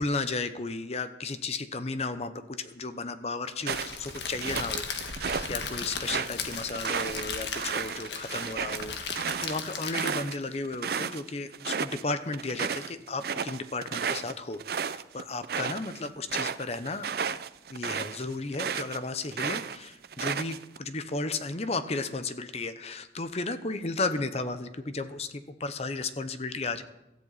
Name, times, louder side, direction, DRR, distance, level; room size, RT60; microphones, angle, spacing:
voice 1, 0.0-4.8 5.1-17.1 17.7-26.8, left 3 dB, 35° left, 11 dB, 0.8 m, -34 dB
sound 1, 3.6-5.5 5.9-11.2 11.5-12.0 12.3-19.0 19.3-20.8, right 6 dB, 60° right, 0.5 m, -33 dB
Crackle, 3.7-10.4, left 5 dB, 80° left, 1.6 m, -37 dB
16.5 x 14.0 x 4.1 m, 0.93 s
head